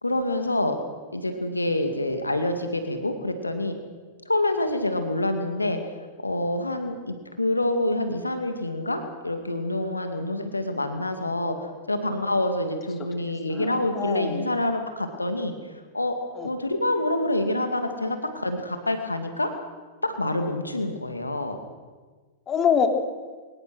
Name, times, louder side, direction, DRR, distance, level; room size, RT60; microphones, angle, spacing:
voice 1, 0.0-0.8 1.1-3.8 4.3-5.8 6.2-15.5 15.9-16.1 16.4-19.5 20.0-21.6, left 1 dB, 90° left, 6 dB, 2.3 m, -27 dB
voice 2, 13.5-14.5 16.3-16.5 22.5-22.9, left 7 dB, 25° left, 4 dB, 3.2 m, -25 dB
24.0 x 20.0 x 6.4 m, 1.4 s
figure-of-eight pair, 100°, 0 cm